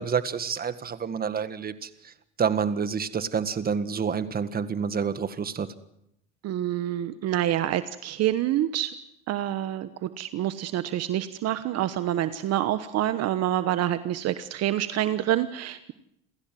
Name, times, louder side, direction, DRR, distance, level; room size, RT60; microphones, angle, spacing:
voice 1, 0.0-2.1 2.4-5.7, right 6 dB, 30° right, 12 dB, 1.8 m, -28 dB
voice 2, 6.4-8.9 9.3-15.9, right 12 dB, 55° right, 12 dB, 1.2 m, -27 dB
28.0 x 16.0 x 7.7 m, 0.80 s
supercardioid pair, 105°, 30 cm